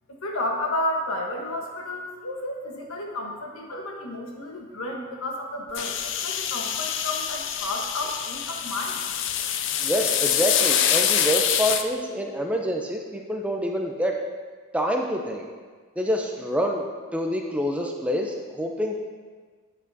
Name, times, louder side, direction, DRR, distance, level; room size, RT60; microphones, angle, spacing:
voice 1, 0.2-6.0 6.2-9.0, left 1 dB, 75° left, 1 dB, 1.1 m, -31 dB
sound 1, 5.7-11.8, left 9 dB, 55° left, 0.4 m, -25 dB
voice 2, 9.8-14.1 14.7-15.5 16.0-16.9 17.1-19.0, equal, 5° right, 1 dB, 0.4 m, -26 dB
9.0 x 7.7 x 2.7 m, 1.5 s
head